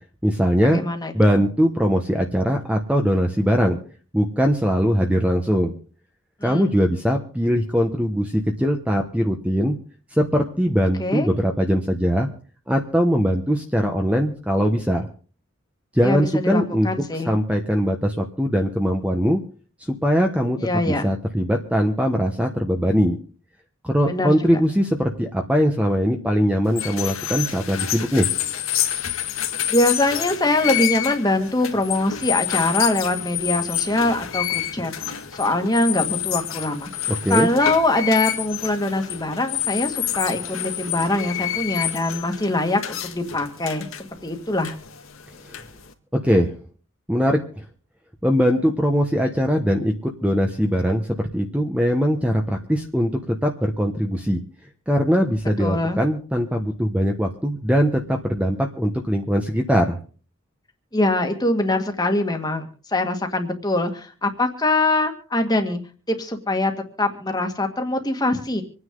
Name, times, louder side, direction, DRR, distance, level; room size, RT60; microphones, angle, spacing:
voice 1, 0.2-0.8 1.1-3.8 4.1-5.7 6.4-9.8 10.1-12.3 12.7-15.1 15.9-16.9 17.2-19.4 19.8-20.6 20.8-23.2 23.8-28.3 37.2-37.5 45.5-45.6 46.2-46.5 47.1-47.6 48.2-54.4 54.9-60.0, equal, 5° right, 3 dB, 1.1 m, -21 dB
voice 2, 0.7-1.4 6.4-6.6 11.0-11.3 16.0-17.4 20.6-21.0 24.1-24.4 29.7-43.9 44.2-44.7 55.6-56.0 60.9-65.8 66.1-66.7 67.0-68.6, left 2 dB, 20° left, 5 dB, 1.9 m, -23 dB
sound 1, 26.7-45.9, left 11 dB, 90° left, 2.0 m, -28 dB
26.5 x 9.7 x 3.8 m, 0.40 s
head